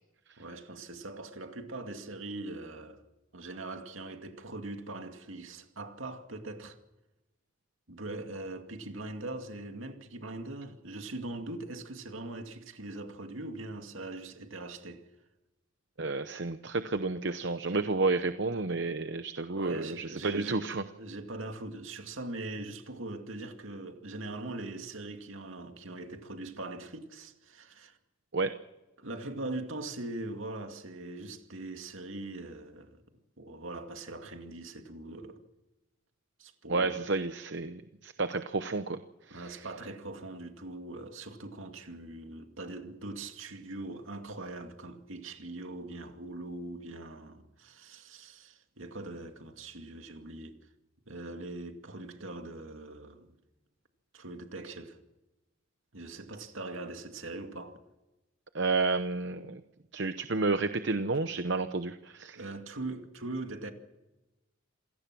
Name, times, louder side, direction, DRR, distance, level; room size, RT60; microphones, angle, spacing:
voice 1, 0.4-3.0 3.3-6.8 7.9-15.1 19.4-20.7 21.0-28.0 29.0-33.0 33.4-35.4 36.4-37.1 39.3-50.6 51.1-53.4 54.1-55.0 55.9-57.8 62.3-63.7, right 2 dB, 75° right, 2.4 m, -41 dB
voice 2, 16.0-20.8 28.3-28.5 36.7-39.0 39.3-39.6 58.5-59.6 59.9-62.5, right 3 dB, 55° right, 0.8 m, -31 dB
27.5 x 17.5 x 6.1 m
head